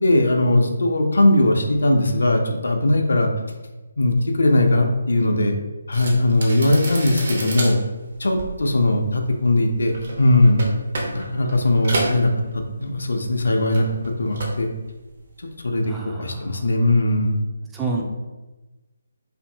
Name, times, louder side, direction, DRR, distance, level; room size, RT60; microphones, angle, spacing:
voice 1, 0.0-3.3 4.0-5.6 5.9-7.8 8.2-10.6 11.1-13.9 14.2-14.7 15.6-15.9 16.2-17.3, left 1 dB, 65° left, 3 dB, 0.4 m, -19 dB
sound 1, 5.9-13.1 13.4-14.7 15.0-15.3, right 1 dB, 50° right, 0.7 m, -31 dB
voice 2, 15.8-16.7 17.7-18.0, right 3 dB, 10° right, -2 dB, 0.3 m, -29 dB
2.6 x 2.5 x 2.6 m, 1.1 s
figure-of-eight pair, 145°, 0 cm